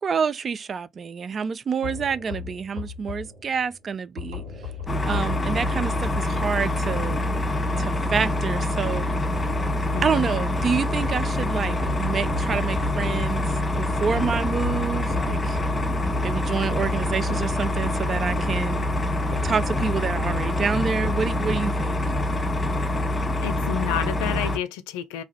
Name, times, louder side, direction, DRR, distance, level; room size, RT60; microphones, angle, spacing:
voice 1, 0.0-4.4 5.0-7.2 7.8-9.1 10.0-13.4 13.8-15.6 16.2-18.9 19.4-22.0, right 6 dB, 45° right, 0.3 m, -27 dB
sound 1, 1.8-8.9 9.3-11.3 11.8-21.7, left 4 dB, 85° right, 1.2 m, -38 dB
sound 2, 4.9-24.6, left 1 dB, 25° left, 0.7 m, -25 dB
voice 2, 9.9-10.5 23.4-25.2, left 11 dB, 80° left, 0.3 m, -30 dB
2.7 x 2.3 x 3.1 m
hypercardioid pair, 45°, 0 cm